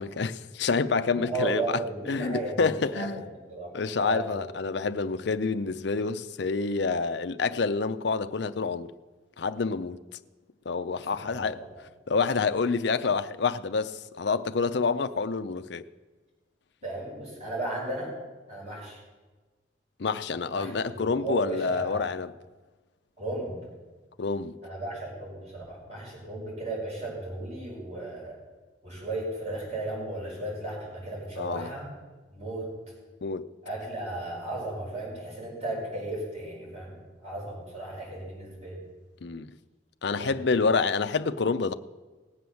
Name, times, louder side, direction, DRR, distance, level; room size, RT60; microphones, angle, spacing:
voice 1, 0.0-1.8 2.1-3.2 3.7-8.9 9.4-10.0 10.7-11.6 12.1-15.9 20.0-22.3 24.2-24.5 31.4-31.7 33.2-33.5 39.2-39.5 40.0-41.7, left 4 dB, 60° left, 0.5 m, -28 dB
voice 2, 1.1-3.2 3.5-4.5 11.1-11.7 16.8-18.1 18.5-19.0 20.5-22.0 23.2-23.6 24.6-28.4 28.8-31.9 32.3-32.7 33.6-37.0 37.2-38.8 40.2-40.3, right 2 dB, 35° right, 5.9 m, -35 dB
18.5 x 7.8 x 7.0 m
head